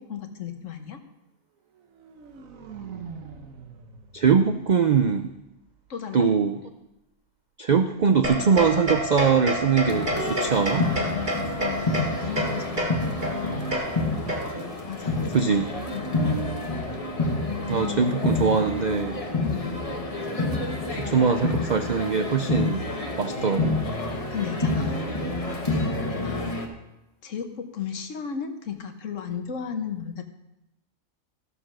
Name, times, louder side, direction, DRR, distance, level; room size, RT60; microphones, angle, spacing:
voice 1, 0.1-1.0 5.9-6.3 10.8-13.1 14.9-15.4 15.9-16.3 19.4-19.7 24.3-25.1 26.1-26.6 27.2-30.2, left 7 dB, 65° left, 6 dB, 1.4 m, -34 dB
sound 1, 1.7-5.8, right 6 dB, 80° right, 1.4 m, -44 dB
voice 2, 4.1-5.3 6.1-6.6 7.6-10.9 15.3-15.7 17.7-19.2 20.9-22.8 23.2-23.8, right 6 dB, 55° right, 8 dB, 0.5 m, -22 dB
sound 2, 8.2-14.8, equal, 35° right, 1.8 m, -29 dB
sound 3, 9.9-26.7, left 2 dB, 25° left, 1.3 m, -28 dB
13.5 x 6.9 x 6.2 m, 0.93 s
omnidirectional pair, 1.4 m